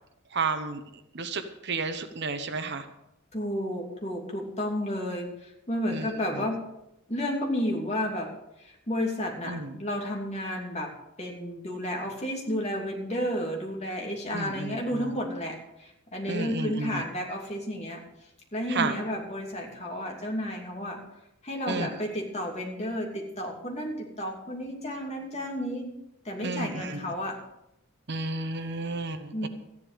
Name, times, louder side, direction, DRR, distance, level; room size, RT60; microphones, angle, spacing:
voice 1, 0.3-0.8 1.1-2.8 5.9-6.1 9.5-9.7 14.3-15.1 16.3-17.0 18.7-18.9 21.7-21.9 26.4-27.0 28.1-29.5, right 3 dB, 55° right, 9 dB, 1.0 m, -32 dB
voice 2, 3.3-6.6 7.1-8.3 8.6-10.9 11.2-18.0 18.5-21.0 21.4-25.9 26.2-27.4 29.3-29.5, equal, 30° left, 0 dB, 2.9 m, -32 dB
14.0 x 11.0 x 5.2 m, 0.85 s
head